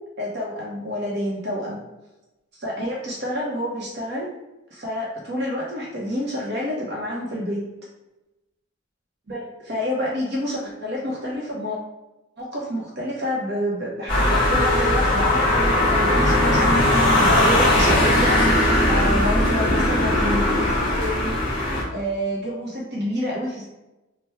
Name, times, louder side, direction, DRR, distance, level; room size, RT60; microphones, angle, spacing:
voice 1, 0.2-1.8 2.6-4.3 4.7-7.6 9.3-11.8 12.4-18.6 18.9-20.7 20.9-21.4 21.9-23.7, equal, 55° right, -4 dB, 0.8 m, -28 dB
sound 1, 14.1-21.8, left 1 dB, 25° left, 1.4 m, -19 dB
3.4 x 2.2 x 4.3 m, 1.0 s
head